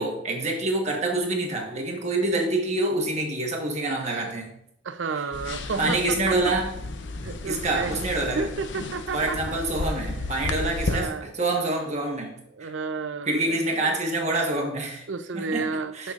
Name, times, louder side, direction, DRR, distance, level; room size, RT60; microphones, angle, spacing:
voice 1, 0.0-4.5 5.8-6.7 7.4-8.5 9.1-12.3 12.6-12.7 13.3-15.0 15.3-15.6 15.9-16.1, right 2 dB, 40° right, 1 dB, 1.2 m, -26 dB
voice 2, 4.8-6.5 7.2-8.0 8.4-9.6 10.0-10.1 10.9-11.3 12.5-13.9 15.1-16.1, right 4 dB, 85° right, 10 dB, 0.6 m, -32 dB
sound 1, 5.3-11.0, left 2 dB, 75° left, 0.6 m, -33 dB
12.5 x 5.4 x 2.5 m, 0.74 s
head